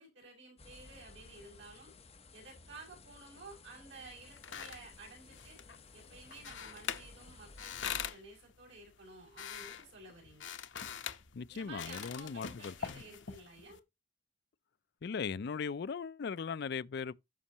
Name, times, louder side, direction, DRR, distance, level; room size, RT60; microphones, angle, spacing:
voice 1, 0.0-1.9 2.3-5.6 5.9-10.5 11.5-13.8, right 3 dB, 85° right, 6.2 m, -53 dB
sound 1, 0.6-8.1, left 3 dB, 35° left, 1.1 m, -56 dB
sound 2, 4.1-13.8, left 8 dB, 85° left, 0.8 m, -44 dB
voice 2, 11.3-13.0 15.0-17.1, left 5 dB, 60° left, 0.4 m, -38 dB
12.5 x 5.5 x 2.9 m
head